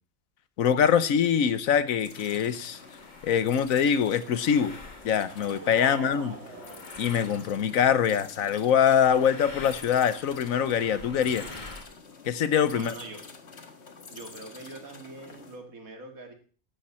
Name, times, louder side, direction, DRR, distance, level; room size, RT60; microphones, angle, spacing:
voice 1, 0.6-2.8 3.2-4.8 5.0-6.4 7.0-11.4 12.2-12.9, left 8 dB, 75° left, 14 dB, 1.3 m, -24 dB
sound 1, 0.8-0.9 1.6-1.7 2.1-7.9 9.0-11.8, left 2 dB, 35° left, 1.8 m, -47 dB
sound 2, 2.0-15.6, left 4 dB, 50° left, 1.7 m, -48 dB
sound 3, 4.9-7.9, right 5 dB, 55° right, 1.5 m, -45 dB
voice 2, 5.8-6.9 12.7-13.2 14.1-16.3, right 3 dB, 80° right, 4 dB, 2.5 m, -44 dB
14.0 x 12.0 x 4.3 m, 0.41 s
omnidirectional pair, 1.5 m